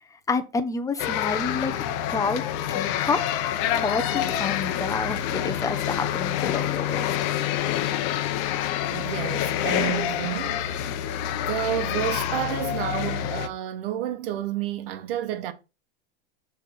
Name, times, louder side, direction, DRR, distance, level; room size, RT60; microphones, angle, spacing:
voice 1, 0.3-1.7 2.1-2.4 2.7-7.3, left 4 dB, 10° left, 0.8 m, -29 dB
sound 1, 1.0-13.5, left 10 dB, 55° left, 1.0 m, -27 dB
voice 2, 8.9-10.6 11.4-15.5, right 11 dB, 70° right, 1.2 m, -30 dB
6.6 x 3.5 x 5.7 m
supercardioid pair, 125°, 30 cm